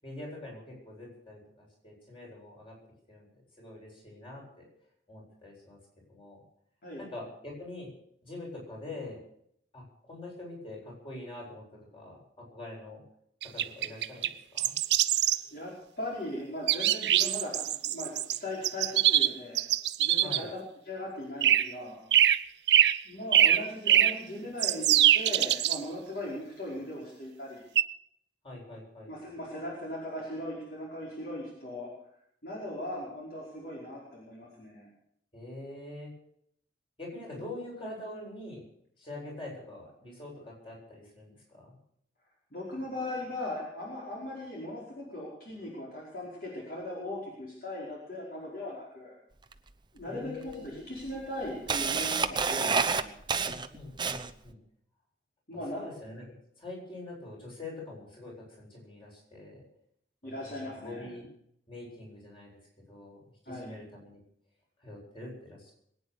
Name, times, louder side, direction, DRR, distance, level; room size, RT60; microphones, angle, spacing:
voice 1, 0.0-2.7 3.1-3.3 3.6-4.6 5.1-5.8 6.1-6.4 7.0-7.9 8.2-9.2 9.7-13.0 13.5-14.7 20.2-20.5 28.4-29.1 35.3-36.1 37.0-38.6 39.0-41.8 50.0-50.7 53.3-54.6 55.7-59.6 60.2-61.3 61.7-62.6 62.9-64.2 64.8-65.7, left 2 dB, 30° left, -2 dB, 7.9 m, -44 dB
sound 1, 13.4-14.3 14.6-15.4 16.7-18.4 18.6-20.4 21.4-21.7 22.1-22.4 22.7-23.0 23.3-24.2 24.6-25.8 27.8-27.9, right 11 dB, 70° right, 0.6 m, -23 dB
voice 2, 16.0-19.6 20.0-22.0 23.0-27.6 29.1-31.9 32.4-34.9 42.5-49.1 49.9-53.1 55.5-55.8 60.2-61.1 63.5-63.8, left 1 dB, 55° left, -4 dB, 4.9 m, -39 dB
Camera, 49.5-49.6 50.5-50.6 51.0-54.5, right 5 dB, 25° right, 0.8 m, -29 dB
22.5 x 9.6 x 6.7 m, 0.69 s
head